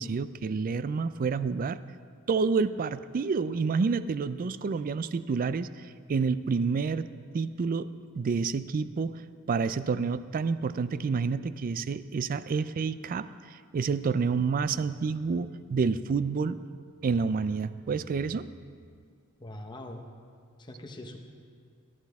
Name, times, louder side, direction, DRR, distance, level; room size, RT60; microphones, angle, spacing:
voice 1, 0.0-1.8 2.3-7.1 7.3-9.2 9.5-16.6 17.0-18.5, right 5 dB, 40° right, 14 dB, 0.3 m, -29 dB
voice 2, 19.4-20.0 20.6-21.2, left 1 dB, 20° left, 3 dB, 1.0 m, -42 dB
16.0 x 11.0 x 3.5 m, 2.1 s
head